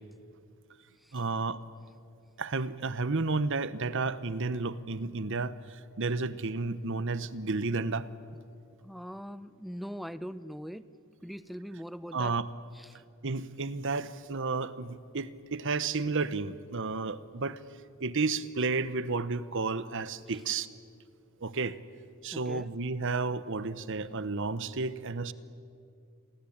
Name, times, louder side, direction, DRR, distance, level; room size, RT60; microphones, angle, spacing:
voice 1, 1.1-1.6 2.4-8.1 12.1-12.5 13.2-17.6 18.0-20.7 21.4-21.8 22.2-25.3, right 3 dB, 60° right, 15 dB, 1.0 m, -32 dB
voice 2, 8.8-10.8 11.2-12.3 12.8-13.0 22.3-22.7, equal, ahead, 14 dB, 0.7 m, -41 dB
29.5 x 23.0 x 8.8 m, 2.4 s
head